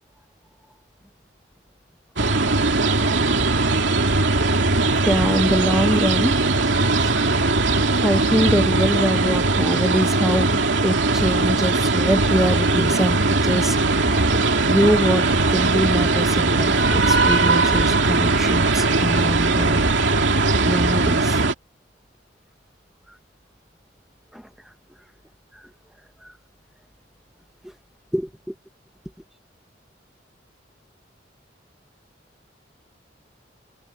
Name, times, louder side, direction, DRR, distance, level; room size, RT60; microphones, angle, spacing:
sound 1, 2.2-21.5, right 3 dB, 80° right, 2.6 m, -19 dB
voice 1, 5.0-6.3 7.0-7.1 8.0-13.8 14.0-14.2 14.7-19.8 20.6-21.4 24.3-24.4 28.1-28.5, equal, ahead, 1.2 m, -24 dB
head